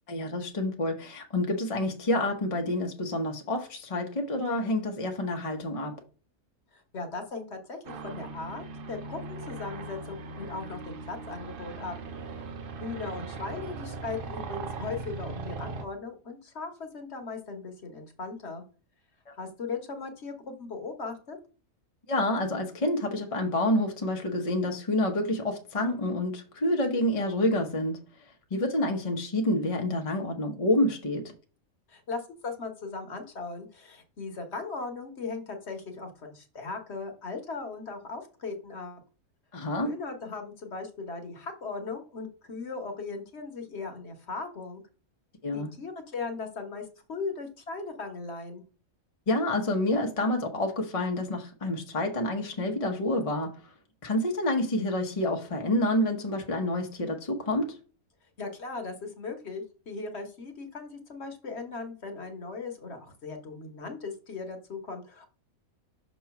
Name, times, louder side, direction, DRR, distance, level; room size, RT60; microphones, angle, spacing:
voice 1, 0.1-6.0 22.1-28.0 28.5-31.3 39.5-39.9 45.4-45.7 49.3-53.7 54.0-57.8, left 1 dB, 30° left, 0.8 m, -28 dB
voice 2, 6.7-11.9 12.8-18.6 19.4-21.4 31.9-39.0 39.8-44.8 45.5-48.6 58.4-65.3, left 4 dB, 50° left, 1.3 m, -38 dB
sound 1, 7.8-15.8, right 3 dB, 50° right, 0.7 m, -39 dB
6.1 x 3.0 x 5.7 m
omnidirectional pair, 1.5 m